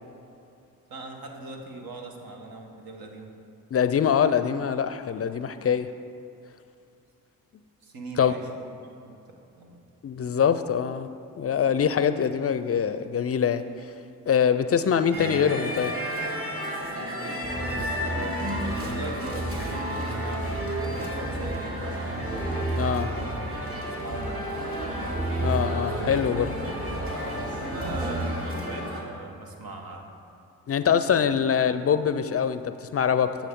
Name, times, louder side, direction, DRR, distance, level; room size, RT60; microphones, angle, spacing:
voice 1, 0.9-3.4 5.6-5.8 7.8-9.2 9.6-9.8 18.9-21.7 23.9-24.5 26.6-26.8 27.6-30.0 31.2-31.4, right 2 dB, 70° right, 2 dB, 1.2 m, -40 dB
voice 2, 3.7-5.9 8.2-8.3 10.0-11.1 11.4-13.6 14.3-16.0 22.7-23.1 25.4-26.5 30.7-33.4, left 7 dB, 40° left, 11 dB, 0.4 m, -24 dB
sound 1, 15.1-29.0, equal, 35° right, 1.9 m, -32 dB
sound 2, 17.4-28.3, right 1 dB, 55° right, 2.1 m, -33 dB
9.1 x 7.2 x 3.7 m, 2.7 s
supercardioid pair, 50°, 37 cm